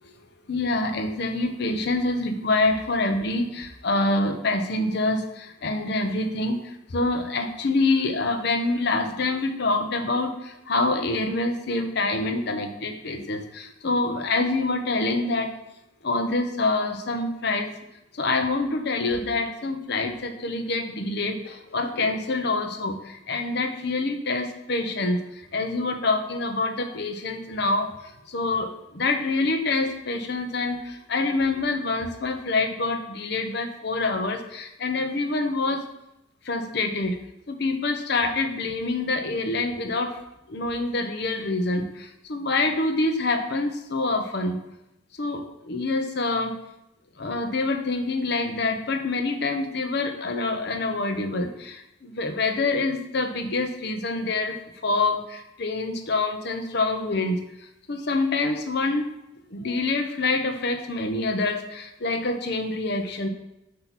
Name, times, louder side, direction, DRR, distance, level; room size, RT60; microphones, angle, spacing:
voice 1, 0.5-15.6 16.0-17.7 18.1-35.8 36.4-37.2 37.5-40.2 40.5-44.6 45.1-46.6 47.2-54.6 54.8-57.4 57.9-59.2 59.5-63.3, left 2 dB, 60° left, 6 dB, 0.7 m, -26 dB
7.9 x 2.9 x 5.8 m, 0.87 s
head